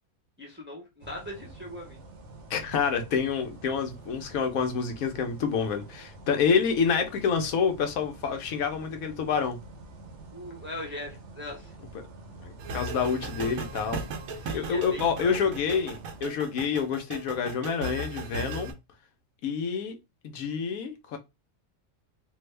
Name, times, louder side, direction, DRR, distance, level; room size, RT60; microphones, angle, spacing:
voice 1, 0.4-2.0 10.3-11.7 14.4-15.4, left 1 dB, 10° right, 0.6 m, -40 dB
sound 1, 1.0-16.2, right 2 dB, 60° right, 1.0 m, -47 dB
voice 2, 2.5-9.6 12.4-14.0 14.5-18.7 19.4-20.0 20.2-21.2, left 6 dB, 75° left, 1.1 m, -28 dB
sound 2, 12.6-18.7, right 3 dB, 80° right, 1.2 m, -37 dB
3.4 x 2.1 x 3.2 m
omnidirectional pair, 1.5 m